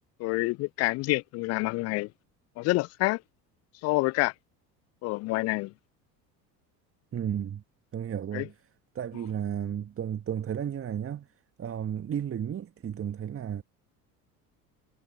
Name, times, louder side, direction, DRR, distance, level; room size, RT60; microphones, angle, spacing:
voice 1, 0.2-2.1 2.6-3.2 3.8-4.3 5.0-5.7 8.3-8.5, left 22 dB, 35° left, 0.4 m, -27 dB
voice 2, 7.1-7.6 7.9-8.5 8.9-11.3 11.6-13.6, right 9 dB, 25° right, 1.6 m, -33 dB
figure-of-eight pair, 65°, 49 cm